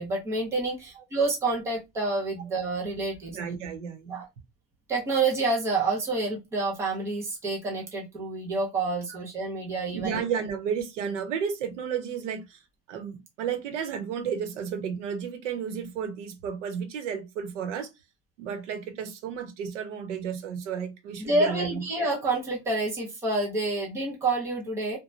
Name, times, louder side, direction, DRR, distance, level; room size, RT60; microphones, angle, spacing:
voice 1, 0.0-3.4 4.1-4.2 4.9-10.2 21.2-25.0, right 3 dB, 10° right, 0.4 m, -28 dB
voice 2, 3.3-4.2 9.1-9.2 9.9-12.6 12.9-17.9 18.4-21.8, right 7 dB, 85° right, 0.9 m, -32 dB
3.0 x 2.1 x 2.4 m
supercardioid pair, 170°, 35 cm